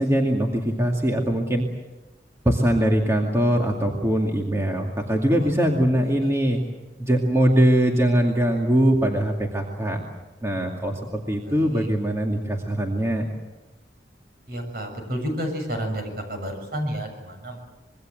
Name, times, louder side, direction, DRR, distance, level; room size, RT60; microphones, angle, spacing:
voice 1, 0.0-1.7 2.4-6.6 7.0-10.0 10.4-13.3, right 1 dB, 15° right, 0 dB, 2.3 m, -22 dB
voice 2, 6.0-6.6 11.4-11.9 14.5-17.6, equal, 60° right, 4 dB, 7.0 m, -31 dB
26.0 x 23.0 x 7.8 m, 1.1 s
head